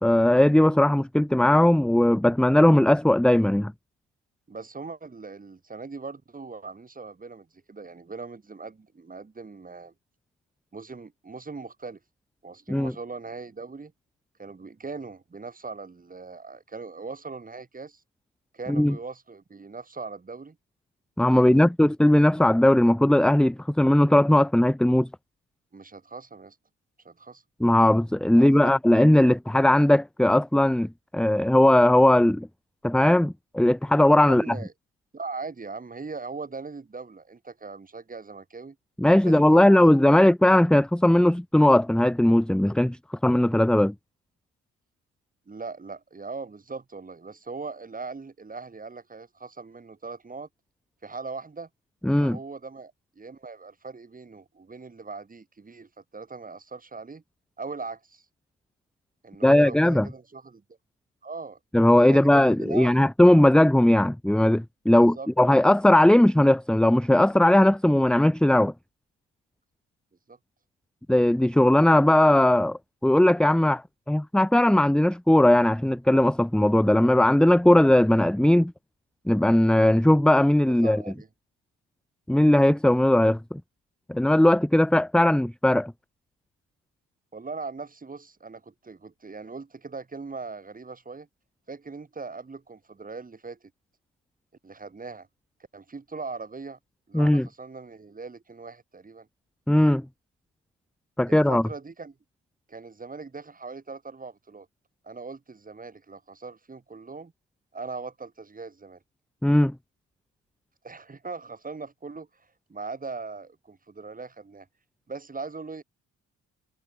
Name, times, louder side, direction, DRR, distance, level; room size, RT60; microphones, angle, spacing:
voice 1, 0.0-3.7 12.7-12.9 18.7-19.0 21.2-25.1 27.6-32.5 32.8-34.5 39.0-43.0 43.2-43.9 52.0-52.4 59.4-60.1 61.7-68.7 71.1-78.7 79.3-81.0 82.3-83.6 84.1-85.9 97.1-97.5 99.7-100.0 101.2-101.6 109.4-109.7, left 1 dB, 5° left, 1.1 m, -19 dB
voice 2, 4.5-9.9 10.7-12.0 12.4-13.9 14.4-18.0 18.5-20.6 21.3-21.7 25.7-26.6 27.0-27.4 28.3-28.7 34.2-34.7 35.1-38.8 39.2-40.2 45.5-50.5 51.0-51.7 52.0-57.2 57.6-58.2 59.2-60.6 61.2-61.6 62.1-63.1 64.9-65.3 70.3-70.4 80.7-81.3 87.3-91.3 91.7-93.6 94.6-95.3 95.7-96.8 97.1-99.3 101.3-102.1 102.7-104.7 105.0-107.3 107.7-109.0 110.8-112.3 112.7-114.7 115.1-115.8, right 4 dB, 30° right, 6.5 m, -40 dB
cardioid pair, 90°, 30 cm